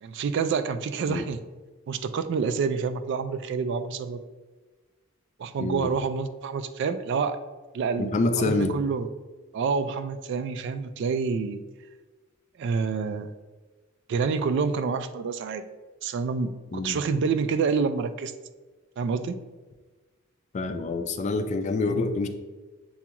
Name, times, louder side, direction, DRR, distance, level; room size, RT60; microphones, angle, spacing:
voice 1, 0.0-1.4 1.9-4.2 5.4-7.4 7.7-9.1 9.5-11.6 12.6-13.3 14.1-15.6 16.0-18.3 19.0-19.4, right 5 dB, 60° right, 10 dB, 0.3 m, -28 dB
voice 2, 8.0-8.7 16.7-17.0 20.5-22.3, left 3 dB, 35° left, 8 dB, 0.3 m, -26 dB
7.0 x 2.4 x 2.9 m, 1.3 s
head